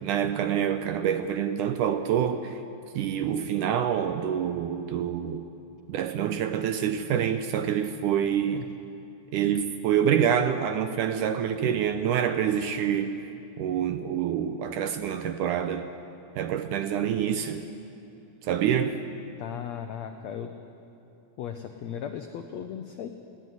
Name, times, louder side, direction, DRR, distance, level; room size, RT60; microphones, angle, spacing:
voice 1, 0.0-2.6 3.0-5.5 5.9-8.6 9.3-13.2 13.6-15.9 16.4-17.7 18.4-19.1, right 9 dB, 80° right, 9 dB, 1.9 m, -26 dB
voice 2, 19.4-20.5 21.4-23.1, left 9 dB, 85° left, 6 dB, 1.5 m, -36 dB
18.5 x 16.5 x 9.4 m, 2.7 s
omnidirectional pair, 4.2 m